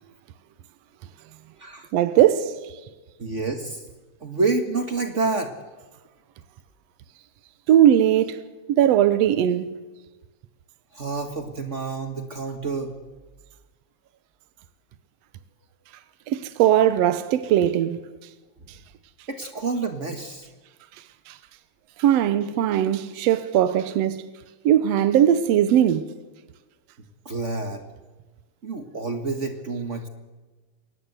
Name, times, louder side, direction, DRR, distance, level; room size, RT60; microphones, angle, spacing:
voice 1, 1.9-2.5 7.7-8.4 8.7-9.7 16.3-18.0 22.0-24.2 24.6-26.1, right 11 dB, 75° right, 1.5 m, -19 dB
voice 2, 3.2-3.8 4.2-5.5 10.9-12.9 19.3-20.5 27.2-27.8 28.6-30.1, right 3 dB, 55° right, 0.7 m, -28 dB
23.5 x 18.5 x 8.1 m
omnidirectional pair, 3.9 m